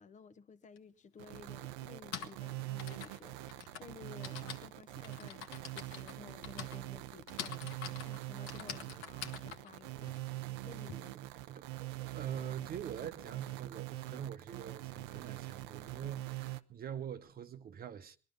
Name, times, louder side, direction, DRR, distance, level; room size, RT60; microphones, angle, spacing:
voice 1, 0.0-10.2 10.6-11.2, left 5 dB, 35° left, 1.0 m, -55 dB
Typing, 0.8-0.9 1.8-10.9, left 8 dB, 75° left, 1.5 m, -47 dB
sound 1, 1.2-16.6, right 17 dB, 85° right, 0.7 m, -44 dB
voice 2, 8.7-9.0 11.1-18.2, right 9 dB, 45° right, 0.9 m, -45 dB
21.0 x 12.0 x 5.3 m
supercardioid pair, 85°, 21 cm